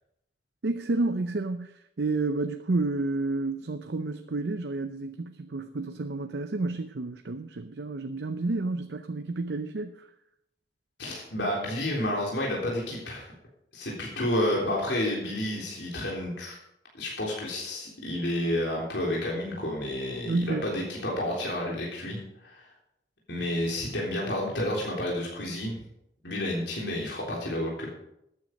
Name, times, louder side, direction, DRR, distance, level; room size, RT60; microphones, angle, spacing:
voice 1, 0.6-1.7 2.0-10.1 20.3-20.7, right 3 dB, 70° right, 8 dB, 0.6 m, -30 dB
voice 2, 11.0-13.3 13.7-16.6 16.9-22.7 23.3-25.8 26.2-27.9, left 1 dB, 85° left, -3 dB, 3.6 m, -30 dB
14.0 x 9.4 x 5.2 m, 0.81 s
head